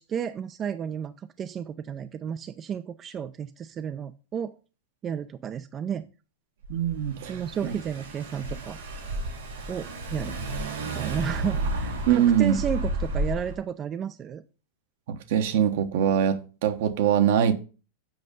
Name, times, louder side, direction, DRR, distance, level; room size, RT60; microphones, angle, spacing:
voice 1, 0.0-4.6 5.0-6.1 7.3-8.8 9.7-10.4 10.9-14.4, right 8 dB, 30° right, 0.4 m, -32 dB
Car / Engine, 6.6-13.6, right 2 dB, 85° right, 3.7 m, -32 dB
voice 2, 6.7-7.8 12.1-12.6 15.1-17.5, right 9 dB, 70° right, 1.1 m, -23 dB
7.8 x 5.2 x 5.3 m
hypercardioid pair, 120°, 0 cm